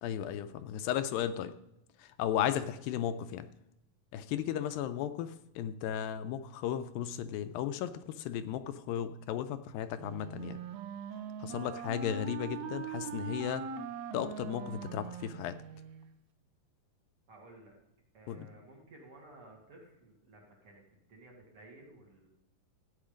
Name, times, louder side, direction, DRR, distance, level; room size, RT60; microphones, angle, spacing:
voice 1, 0.0-1.5 2.0-3.5 4.1-10.6 11.4-13.6 14.1-15.6 18.3-18.5, left 10 dB, 85° left, 11 dB, 2.2 m, -35 dB
Wind instrument woodwind instrument, 10.0-16.1, right 6 dB, 75° right, 1.8 m, -41 dB
voice 2, 17.3-17.7 18.1-22.3, right 2 dB, 45° right, -1 dB, 2.4 m, -55 dB
14.0 x 8.7 x 5.0 m, 0.85 s
omnidirectional pair, 4.1 m